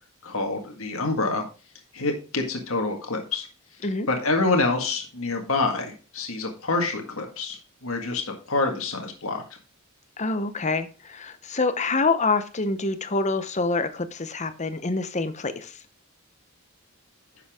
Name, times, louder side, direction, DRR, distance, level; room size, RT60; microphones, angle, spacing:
voice 1, 0.2-1.4 1.9-3.5 4.1-9.4, left 3 dB, 65° left, 3 dB, 1.8 m, -27 dB
voice 2, 10.2-15.8, left 3 dB, 35° left, 12 dB, 0.9 m, -26 dB
10.5 x 7.0 x 3.6 m, 0.34 s
head